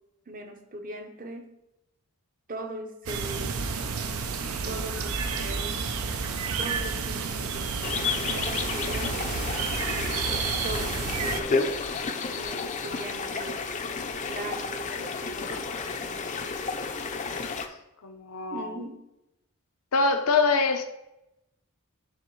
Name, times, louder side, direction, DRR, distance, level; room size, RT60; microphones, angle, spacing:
voice 1, 0.3-1.6 2.5-3.6 4.6-5.9 6.6-7.7 8.3-9.6 10.6-11.7 12.4-13.6 14.3-15.7 18.5-19.1, right 1 dB, 40° right, 5 dB, 0.8 m, -39 dB
sound 1, 3.1-11.4, right 5 dB, 70° right, 0.5 m, -30 dB
sound 2, 7.8-17.7, left 4 dB, 35° left, 0.5 m, -31 dB
voice 2, 18.0-18.8 19.9-20.8, left 4 dB, 75° left, 6 dB, 0.7 m, -24 dB
10.5 x 3.5 x 3.1 m, 0.90 s
head